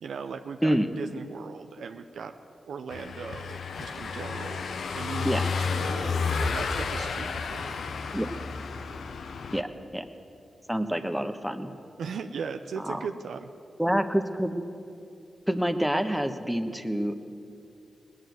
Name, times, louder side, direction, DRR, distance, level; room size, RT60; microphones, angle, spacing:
voice 1, 0.0-2.3 2.7-4.7 4.9-7.8 12.0-13.5, right 5 dB, 85° right, 6 dB, 0.5 m, -38 dB
Car passing by / Engine, 2.9-9.6, left 5 dB, 75° left, 0.7 m, -31 dB
voice 2, 10.7-11.7 12.8-13.0 13.8-14.6 15.5-17.2, equal, ahead, 6 dB, 1.2 m, -27 dB
18.5 x 9.4 x 7.9 m, 2.6 s
cardioid pair, 50°, 0 cm